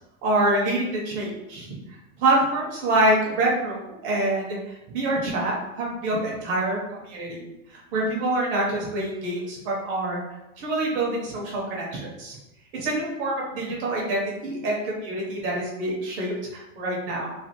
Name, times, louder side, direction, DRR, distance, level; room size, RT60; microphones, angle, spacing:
voice 1, 0.2-1.7 2.2-4.6 4.9-6.8 7.1-7.4 7.9-10.2 10.6-12.4 12.8-17.3, right 1 dB, 30° right, -3 dB, 0.6 m, -26 dB
3.2 x 2.4 x 2.8 m, 0.94 s
supercardioid pair, 165°, 41 cm